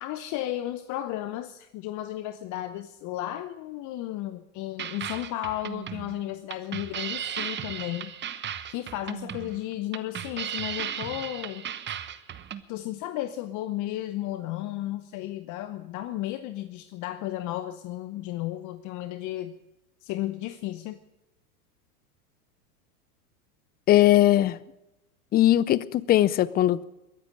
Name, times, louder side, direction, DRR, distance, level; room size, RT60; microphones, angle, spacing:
voice 1, 0.0-8.1 8.7-11.7 12.7-19.6 20.0-21.0, left 14 dB, 40° left, 12 dB, 0.9 m, -34 dB
sound 1, 4.8-12.6, right 9 dB, 25° right, 1.1 m, -35 dB
voice 2, 23.9-24.6 25.3-26.8, left 14 dB, 20° left, 21 dB, 0.5 m, -20 dB
22.0 x 9.6 x 6.5 m, 0.94 s
hypercardioid pair, 100°, 46 cm